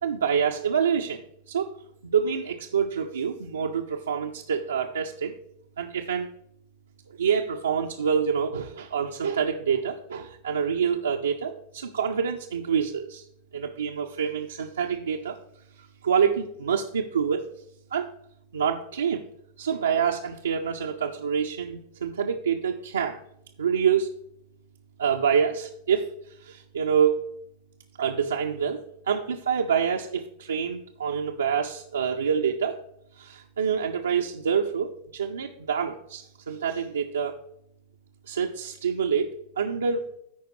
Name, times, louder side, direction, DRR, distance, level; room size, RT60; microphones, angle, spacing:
voice 1, 0.0-1.2 1.5-1.7 2.0-5.3 5.8-6.3 7.2-13.2 13.5-15.4 16.0-17.4 17.9-18.1 18.5-19.2 19.6-23.2 23.6-24.1 25.0-26.1 26.4-27.3 28.0-32.8 33.2-37.4 38.3-40.2, right 7 dB, 70° right, 1 dB, 0.5 m, -26 dB
13.5 x 4.9 x 3.1 m, 0.73 s
figure-of-eight pair, 90°, 0 cm